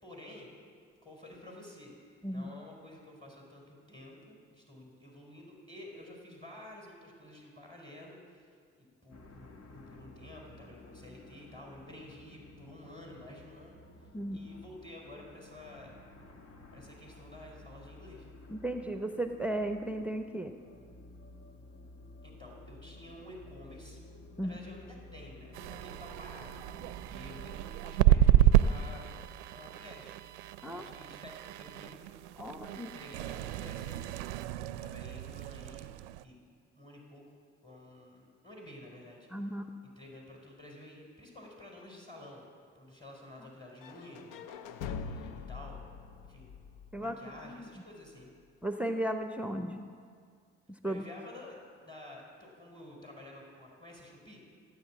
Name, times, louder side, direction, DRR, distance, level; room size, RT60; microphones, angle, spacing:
voice 1, 0.0-0.5 1.0-16.0 16.7-18.3 22.2-24.0 24.4-29.1 29.5-30.1 30.7-32.0 32.3-34.1 34.8-35.9 36.2-37.3 37.6-39.3 40.0-42.5 42.7-44.3 44.9-46.0 46.2-46.5 47.0-48.3 50.8-54.4, left 1 dB, 15° left, -2 dB, 4.5 m, -51 dB
sound 1, 9.1-27.6, left 2 dB, 50° left, 1.6 m, -53 dB
voice 2, 14.1-14.5 18.5-20.6 24.4-24.6 30.6-30.8 32.4-32.9 39.3-39.7 43.4-43.5 46.9-47.2 47.4-47.7 48.6-49.9 50.7-51.0, right 1 dB, 5° right, 6 dB, 0.8 m, -35 dB
sound 2, 25.5-36.2, right 12 dB, 85° right, 0.5 m, -30 dB
sound 3, 43.8-47.7, left 5 dB, 65° left, 0.8 m, -43 dB
16.0 x 8.3 x 7.2 m, 2.1 s
hypercardioid pair, 50°, 33 cm